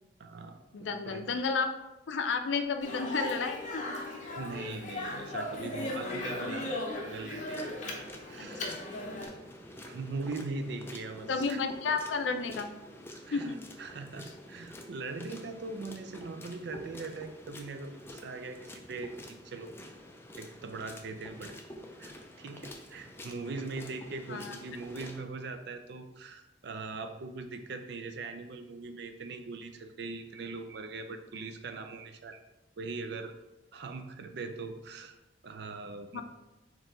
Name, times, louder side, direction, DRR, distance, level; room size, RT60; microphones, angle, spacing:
voice 1, 0.2-1.2 4.3-8.0 8.3-8.7 9.8-11.6 13.1-19.1 19.4-19.7 20.4-21.5 22.0-32.4 32.8-33.3 33.7-35.1 35.4-36.2, right 3 dB, 65° right, 8 dB, 0.4 m, -41 dB
voice 2, 0.7-1.7 2.1-3.8 8.4-8.8 11.3-12.7 13.3-13.6 24.3-24.6 36.1-36.2, left 4 dB, 80° left, 7 dB, 0.4 m, -32 dB
Speech, 2.8-9.3, left 1 dB, 40° left, 0.8 m, -37 dB
sound 1, 7.5-25.2, left 1 dB, 15° left, 0.4 m, -48 dB
4.3 x 3.0 x 3.7 m, 1.0 s
head